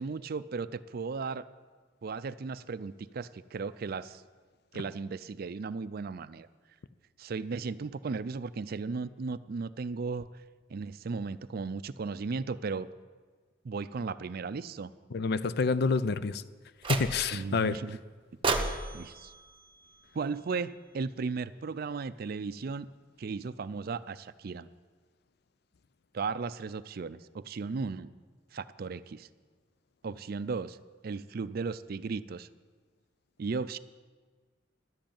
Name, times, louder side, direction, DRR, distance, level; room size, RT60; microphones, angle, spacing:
voice 1, 0.0-1.5 2.0-4.2 4.7-6.5 7.2-10.3 10.7-12.9 13.6-14.9 17.3-18.0 18.9-19.3 20.1-22.9 23.2-24.7 26.1-28.1 28.5-29.3 30.0-30.8 31.0-32.5 33.4-33.8, right 4 dB, 50° right, 0.4 m, -36 dB
voice 2, 15.1-16.4 16.9-17.8, left 4 dB, 55° left, 0.5 m, -28 dB
sound 1, 16.8-17.5 18.4-20.7, right 3 dB, 25° right, 0.9 m, -34 dB
12.0 x 7.8 x 8.8 m
head